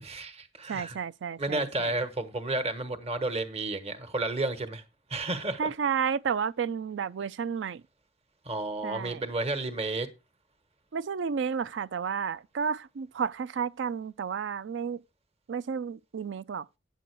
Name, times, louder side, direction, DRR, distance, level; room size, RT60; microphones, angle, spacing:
voice 1, 0.0-1.0 1.4-4.8 5.1-5.7 8.4-10.1, right 2 dB, 35° right, 1.2 m, -32 dB
voice 2, 0.7-2.0 5.6-7.8 8.8-9.2 10.9-15.0 15.5-16.7, right 6 dB, 80° right, 0.4 m, -32 dB
9.3 x 7.6 x 4.6 m
head